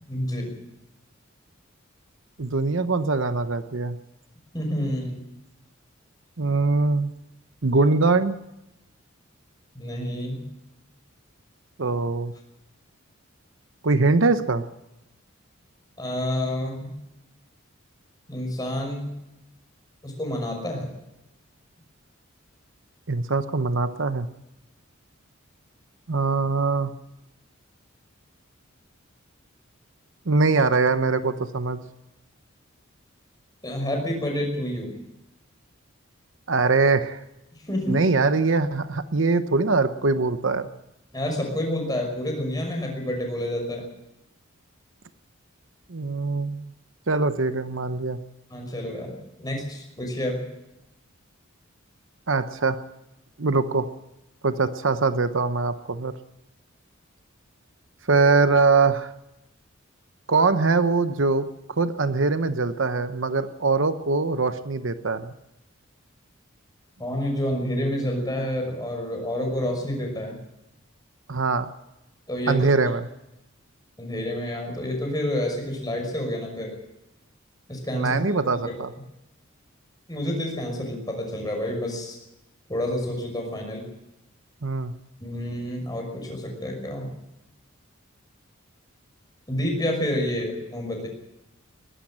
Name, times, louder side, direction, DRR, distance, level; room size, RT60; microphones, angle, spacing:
voice 1, 0.1-0.6 4.5-5.2 9.7-10.5 16.0-16.9 18.3-19.1 20.0-20.9 33.6-34.9 37.7-38.0 41.1-43.9 48.5-50.5 67.0-70.4 72.3-72.7 74.0-76.7 77.7-78.2 78.6-78.7 80.1-82.2 82.7-83.9 85.2-87.2 89.5-91.1, left 1 dB, 20° left, 2 dB, 5.9 m, -29 dB
voice 2, 2.4-4.0 6.4-7.1 7.6-8.4 11.8-12.3 13.8-14.6 23.1-24.3 26.1-26.9 30.3-31.8 36.5-37.2 37.9-40.7 45.9-46.7 47.1-48.2 52.3-52.8 53.4-53.8 54.4-56.1 58.1-59.1 60.3-65.3 71.3-71.7 72.5-73.0 77.9-78.9 84.6-84.9, right 3 dB, 65° right, 11 dB, 0.9 m, -22 dB
20.5 x 12.5 x 10.0 m, 0.92 s
head